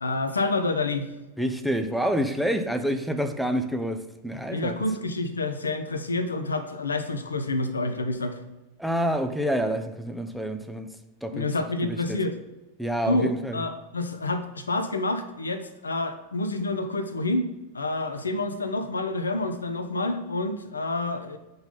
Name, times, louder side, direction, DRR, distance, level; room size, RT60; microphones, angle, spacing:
voice 1, 0.0-1.1 4.5-8.4 11.3-12.4 13.1-21.4, left 2 dB, 75° left, 8 dB, 0.6 m, -28 dB
voice 2, 1.4-4.8 8.8-10.9 11.2-11.5 11.8-12.2 12.8-13.6, equal, ahead, 7 dB, 0.5 m, -27 dB
5.7 x 3.9 x 5.5 m, 1.0 s
figure-of-eight pair, 90°, 0 cm